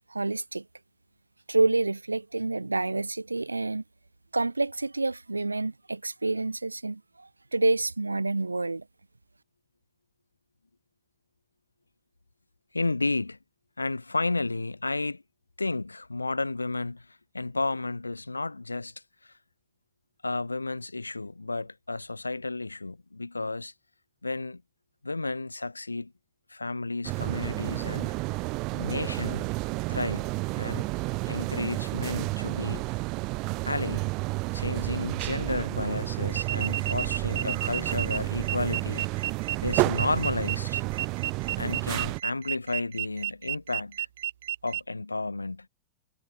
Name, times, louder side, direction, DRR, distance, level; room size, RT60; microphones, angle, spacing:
voice 1, 0.1-0.7 1.5-3.8 4.3-8.8, right 3 dB, 80° right, 0.5 m, -28 dB
voice 2, 12.7-13.4 13.8-15.2 15.6-17.1 17.3-18.9 19.2-19.3 20.2-23.7 24.2-24.6 25.0-26.1 26.5-28.2 28.7-29.5 29.9-30.9 31.3-32.8 33.6-34.1 34.5-39.1 39.6-40.8 41.6-44.1 44.6-45.7, left 3 dB, 80° left, 0.5 m, -32 dB
sound 1, 27.0-42.2, right 25 dB, 40° right, 1.0 m, -31 dB
sound 2, 36.3-44.8, right 12 dB, 60° right, 1.2 m, -32 dB
figure-of-eight pair, 90°, 0 cm